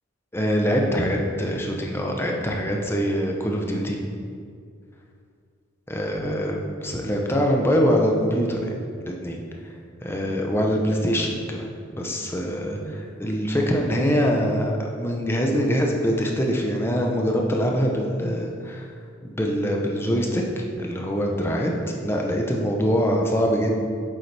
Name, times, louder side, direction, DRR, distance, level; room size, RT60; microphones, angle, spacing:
voice 1, 0.3-4.0 5.9-8.7 9.0-9.7 10.0-18.9 19.2-21.7 22.0-23.8, equal, 10° left, 0 dB, 0.7 m, -24 dB
8.6 x 6.8 x 3.4 m, 2.3 s
head